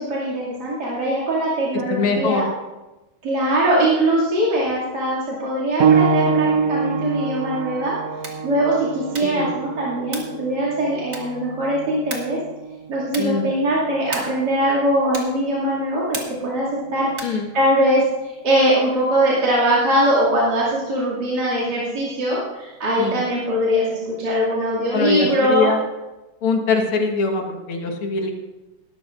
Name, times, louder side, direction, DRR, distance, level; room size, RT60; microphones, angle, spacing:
voice 1, 0.0-2.4 3.2-8.0 8.4-12.4 12.9-25.7, right 1 dB, 50° right, -7 dB, 3.0 m, -21 dB
voice 2, 1.9-2.4 9.2-9.5 13.2-13.5 17.2-17.5 23.0-23.2 24.9-25.8 26.4-28.3, left 4 dB, 80° left, 3 dB, 2.4 m, -22 dB
sound 1, 5.8-16.0 17.0-17.1 17.8-17.9, right 6 dB, 85° right, 0.7 m, -25 dB
sound 2, 8.1-8.5 9.1-9.5 10.1-10.4 11.1-11.5 12.1-12.4 13.1-13.4 14.1-14.5 15.1-15.4 16.1-16.5 17.1-17.4, right 3 dB, 35° right, 1.7 m, -34 dB
19.5 x 12.0 x 2.5 m, 1.1 s
omnidirectional pair, 2.3 m